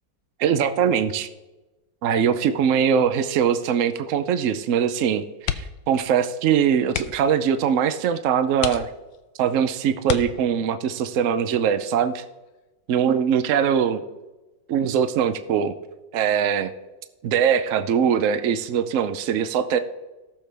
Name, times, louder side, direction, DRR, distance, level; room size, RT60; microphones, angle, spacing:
voice 1, 0.4-1.3 2.0-8.9 9.4-12.2 12.9-14.0 14.7-15.7 16.1-16.7 17.2-19.8, right 8 dB, 80° right, 11 dB, 0.7 m, -22 dB
sound 1, 5.4-5.9 6.2-6.4 6.9-7.4 8.0-8.1 8.6-9.3 10.0-10.8 12.4-12.7 13.0-13.1, left 10 dB, 90° left, 1.4 m, -30 dB
18.0 x 6.8 x 3.4 m, 1.1 s
omnidirectional pair, 2.1 m